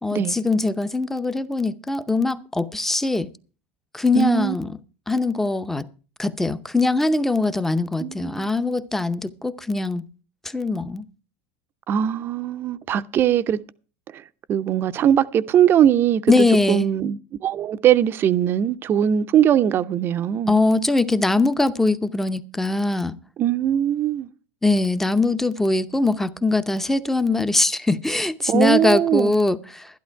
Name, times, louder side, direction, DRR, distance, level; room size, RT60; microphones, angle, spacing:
voice 1, 0.0-3.3 3.9-4.7 5.1-5.9 6.2-10.0 10.4-11.1 16.3-16.9 20.5-23.1 24.6-29.9, left 2 dB, 5° left, 0.7 m, -22 dB
voice 2, 4.1-4.5 8.0-8.5 11.9-13.6 14.1-14.2 14.5-20.6 23.4-24.3 28.5-29.3, right 10 dB, 35° right, 0.6 m, -20 dB
12.0 x 11.5 x 4.5 m
supercardioid pair, 135°, 7 cm